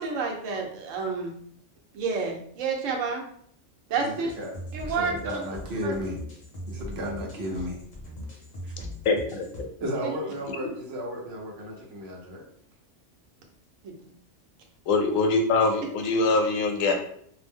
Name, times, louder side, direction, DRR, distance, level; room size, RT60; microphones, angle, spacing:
voice 1, 0.0-1.3 1.9-3.2 3.9-4.3 4.7-5.4 5.8-5.9 10.0-10.1 13.8-13.9, right 5 dB, 85° right, 1 dB, 1.0 m, -29 dB
voice 2, 3.9-4.5 4.8-6.2 6.6-7.8 8.6-8.8 9.8-12.4, equal, 60° right, 0 dB, 0.9 m, -34 dB
sound 1, 4.3-9.6, equal, 40° left, 0.8 m, -40 dB
voice 3, 8.8-9.7 14.9-16.9, left 3 dB, 90° left, 4 dB, 1.0 m, -24 dB
2.6 x 2.0 x 3.4 m, 0.64 s
omnidirectional pair, 1.3 m